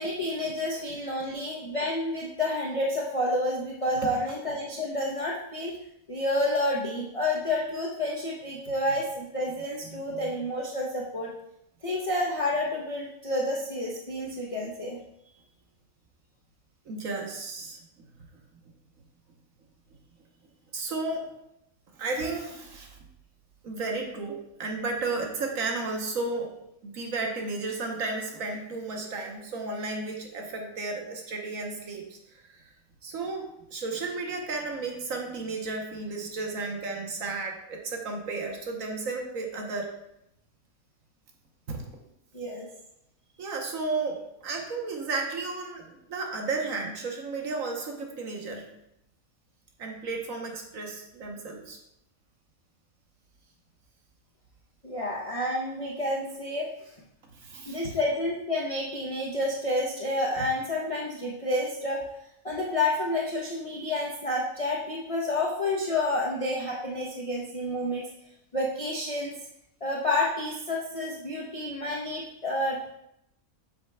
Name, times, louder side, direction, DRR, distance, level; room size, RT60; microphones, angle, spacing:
voice 1, 0.0-5.7 6.1-11.3 11.8-15.0 42.3-42.7 54.8-56.7 57.7-62.0 62.4-68.1 68.5-69.3 69.8-72.9, left 1 dB, 30° left, -4 dB, 0.7 m, -29 dB
voice 2, 9.9-10.3 16.8-17.8 20.7-21.3 21.9-23.0 23.6-26.5 26.8-32.6 33.0-39.9 41.7-41.9 43.4-48.7 49.8-51.8 57.3-57.9, right 3 dB, 70° right, 2 dB, 1.4 m, -33 dB
8.0 x 6.7 x 2.2 m, 0.80 s
omnidirectional pair, 1.5 m